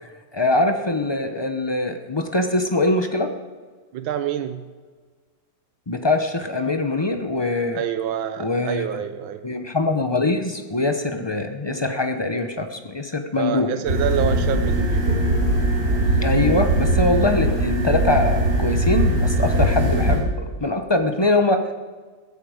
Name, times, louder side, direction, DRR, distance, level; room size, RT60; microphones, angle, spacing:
voice 1, 0.0-3.3 5.9-7.8 8.4-8.9 9.4-13.7 16.1-21.6, left 2 dB, 35° left, 6 dB, 0.4 m, -23 dB
voice 2, 3.9-4.6 7.7-9.4 13.4-15.1, right 9 dB, 90° right, 9 dB, 1.6 m, -27 dB
sound 1, 13.8-20.2, right 1 dB, 45° right, 4.9 m, -20 dB
15.5 x 14.5 x 5.1 m, 1.4 s
omnidirectional pair, 2.1 m